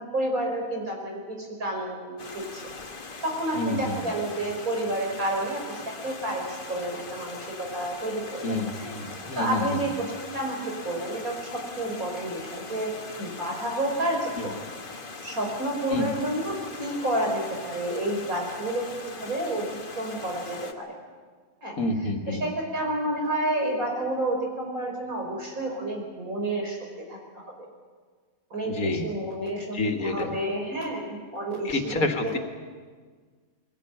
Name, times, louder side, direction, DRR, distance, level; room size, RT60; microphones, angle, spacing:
voice 1, 0.0-2.6 3.2-12.9 13.2-14.3 14.9-19.6 20.0-20.9 21.6-21.7 22.3-26.8 27.1-27.5 28.5-32.3, right 1 dB, 80° right, 0 dB, 5.6 m, -30 dB
Stream, 2.2-20.7, left 3 dB, 40° left, 1.5 m, -41 dB
voice 2, 3.5-4.0 8.4-9.9 14.4-14.6 15.9-16.1 21.8-22.4 28.7-29.1 29.7-30.4 31.6-32.4, left 2 dB, 85° left, 5 dB, 2.2 m, -28 dB
22.5 x 17.5 x 9.1 m, 1.5 s
omnidirectional pair, 1.5 m